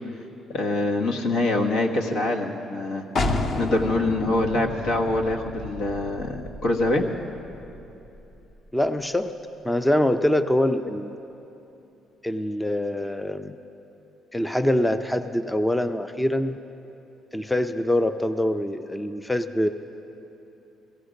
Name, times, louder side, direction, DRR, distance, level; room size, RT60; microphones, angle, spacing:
voice 1, 0.5-7.0, left 2 dB, 90° left, 1 dB, 1.4 m, -25 dB
sound 1, 3.2-8.7, left 2 dB, 35° left, 0.7 m, -31 dB
voice 2, 8.7-9.4 9.6-11.2 12.2-13.6 14.3-16.6 17.3-19.7, left 1 dB, 5° left, 10 dB, 0.4 m, -24 dB
17.0 x 15.5 x 5.1 m, 2.9 s
cardioid pair, 155°, 0 cm